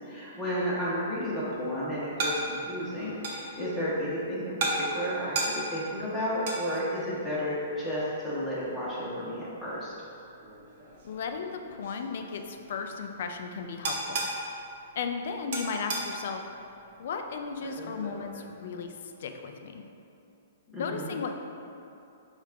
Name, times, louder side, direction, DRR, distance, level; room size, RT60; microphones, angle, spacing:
voice 1, 0.1-9.9 20.7-21.1, equal, 5° left, -10 dB, 1.1 m, -32 dB
sound 1, 0.7-19.2, right 2 dB, 55° right, 0.8 m, -38 dB
voice 2, 11.0-14.2 15.0-16.4 17.0-18.9 19.2-19.8 20.8-21.3, left 5 dB, 65° left, 5 dB, 0.3 m, -35 dB
4.7 x 2.4 x 3.3 m, 2.7 s
hypercardioid pair, 145°, 0 cm